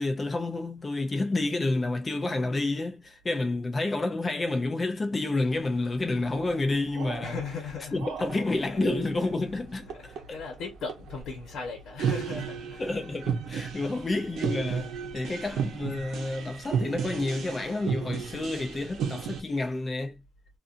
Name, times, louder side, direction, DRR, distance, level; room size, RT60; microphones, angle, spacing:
voice 1, 0.0-7.4 7.9-10.4 12.8-20.1, left 2 dB, 20° left, 0.6 m, -29 dB
sound 1, 5.4-19.4, right 6 dB, 70° right, 0.8 m, -35 dB
voice 2, 7.2-8.0 8.3-8.8 9.3-9.4 9.9-12.8, left 4 dB, 60° left, 1.2 m, -38 dB
2.7 x 2.5 x 2.5 m
cardioid pair, 175°, 0 cm